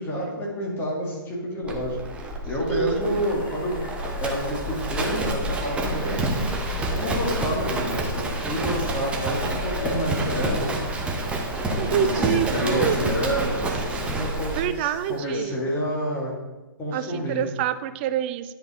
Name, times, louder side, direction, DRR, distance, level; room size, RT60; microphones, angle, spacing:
voice 1, 0.0-2.0 2.4-3.8 4.2-6.5 6.9-10.7 11.7-16.3 16.8-17.4, equal, 15° left, -3 dB, 2.2 m, -29 dB
Livestock farm animals working animals, 1.6-14.7, right 1 dB, 10° right, 0.9 m, -28 dB
voice 2, 2.7-3.2 11.8-13.1 14.5-15.6 16.9-18.4, right 10 dB, 30° right, 13 dB, 0.3 m, -27 dB
sound 1, 3.0-15.2, left 2 dB, 60° left, 2.3 m, -39 dB
10.0 x 5.2 x 4.3 m, 1.1 s
figure-of-eight pair, 130°, 12 cm